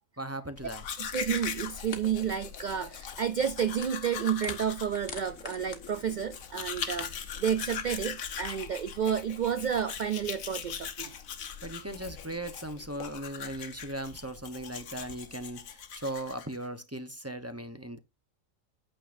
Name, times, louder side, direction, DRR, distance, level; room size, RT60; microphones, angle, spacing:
voice 1, 0.2-0.9 11.6-18.0, right 1 dB, 15° right, 0.7 m, -38 dB
Domestic sounds home sounds, 0.6-16.7, left 7 dB, 85° left, 1.4 m, -40 dB
voice 2, 1.0-11.1, right 8 dB, 85° right, 0.4 m, -31 dB
sound 1, 1.9-2.1 2.3-2.6 3.0-4.1 4.3-5.8, left 5 dB, 55° left, 1.6 m, -43 dB
8.9 x 6.7 x 2.6 m
omnidirectional pair, 1.4 m